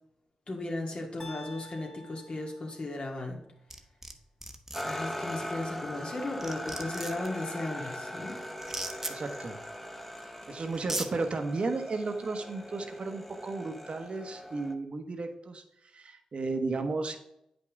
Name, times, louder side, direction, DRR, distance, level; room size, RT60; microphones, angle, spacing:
voice 1, 0.5-3.4 4.8-8.4 9.1-9.2, left 2 dB, 50° left, 1 dB, 2.0 m, -36 dB
sound 1, 1.2-3.3, left 1 dB, 25° left, 1.6 m, -49 dB
sound 2, 3.7-4.1 4.4-4.8 6.0-6.1 6.4-7.3 8.6-9.1 10.2-10.3 10.7-11.1, right 1 dB, 15° right, 1.0 m, -36 dB
sound 3, 4.7-14.7, equal, 5° left, 1.1 m, -40 dB
voice 2, 9.1-9.6 10.5-15.6 15.9-17.2, right 3 dB, 55° right, 6 dB, 1.1 m, -34 dB
8.2 x 5.3 x 3.5 m, 0.79 s
supercardioid pair, 40°, 2 cm